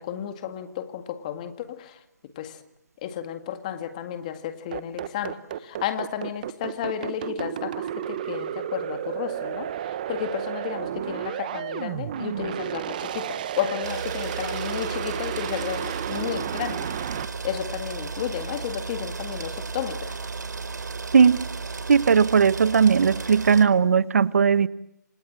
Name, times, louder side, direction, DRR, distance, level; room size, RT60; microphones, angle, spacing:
voice 1, 0.0-2.0 2.4-2.6 3.0-16.9 17.4-20.2, left 10 dB, 25° left, 1.9 m, -32 dB
sound 1, 4.7-17.2, right 10 dB, 25° right, 1.1 m, -32 dB
sound 2, 13.8-23.7, right 4 dB, 65° right, 4.2 m, -34 dB
voice 2, 21.1-21.4 21.9-24.7, right 6 dB, 50° right, 1.1 m, -18 dB
28.5 x 27.0 x 7.7 m
hypercardioid pair, 165°, 10 cm